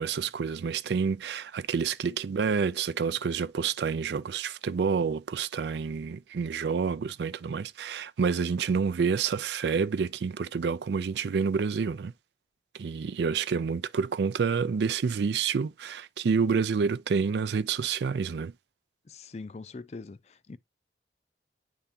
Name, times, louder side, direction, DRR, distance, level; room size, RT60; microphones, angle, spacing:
voice 1, 0.0-12.1 12.7-18.5, right 5 dB, 70° right, 0.4 m, -28 dB
voice 2, 19.1-20.6, left 3 dB, 35° left, 0.4 m, -42 dB
9.8 x 3.5 x 2.7 m
head